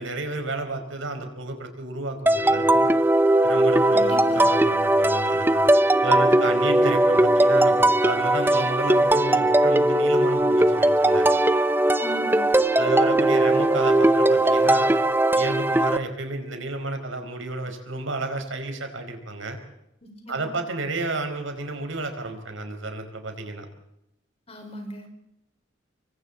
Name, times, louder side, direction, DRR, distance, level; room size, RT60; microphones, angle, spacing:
voice 1, 0.0-2.9 3.4-5.6 6.0-11.3 12.8-14.9 15.4-19.6 20.3-23.7, right 2 dB, 85° right, 5 dB, 4.7 m, -31 dB
sound 1, 2.3-16.0, right 1 dB, 10° right, 0.7 m, -19 dB
voice 2, 3.9-4.4 12.0-12.5 20.0-20.5 24.5-25.1, equal, 30° left, 4 dB, 5.1 m, -38 dB
26.0 x 24.0 x 4.2 m, 0.81 s
head